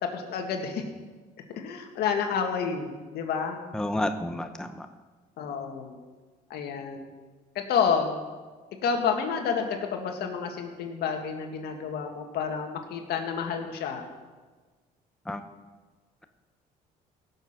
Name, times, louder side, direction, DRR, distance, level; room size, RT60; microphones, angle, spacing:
voice 1, 0.0-0.8 1.5-3.6 5.4-6.0 6.5-7.0 7.7-8.2 8.8-14.0, left 6 dB, 70° left, 3 dB, 2.0 m, -29 dB
voice 2, 3.7-4.9 15.3-15.4, left 1 dB, 5° left, 7 dB, 0.8 m, -30 dB
17.0 x 7.2 x 5.8 m, 1.4 s
cardioid pair, 110°, 17 cm